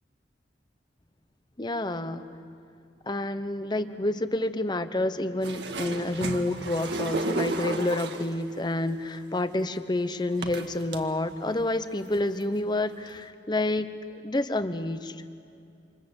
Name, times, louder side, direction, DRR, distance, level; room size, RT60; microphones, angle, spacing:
voice 1, 1.6-2.2 3.1-15.2, left 2 dB, 25° left, 11 dB, 1.0 m, -29 dB
sound 1, 5.4-8.4 9.4-9.5 10.4-11.0 11.6-11.7 12.0-12.4 13.1-13.2, right 2 dB, 70° right, 1.8 m, -32 dB
28.0 x 26.5 x 8.1 m, 2.6 s
head